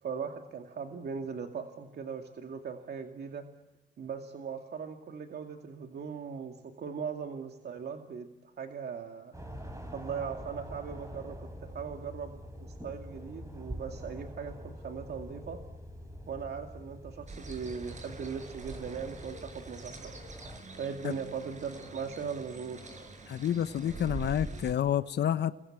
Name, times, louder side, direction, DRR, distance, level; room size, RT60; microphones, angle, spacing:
voice 1, 0.0-3.4 4.0-9.3 9.9-15.6 16.3-20.1 20.8-22.8, right 6 dB, 55° right, 2.4 m, -39 dB
sound 1, 9.3-20.6, equal, 15° right, 5.7 m, -45 dB
sound 2, 17.3-24.7, right 3 dB, 35° right, 6.3 m, -45 dB
voice 2, 23.3-25.5, left 10 dB, 60° left, 1.0 m, -29 dB
29.5 x 22.0 x 8.8 m
cardioid pair, 90°, 20 cm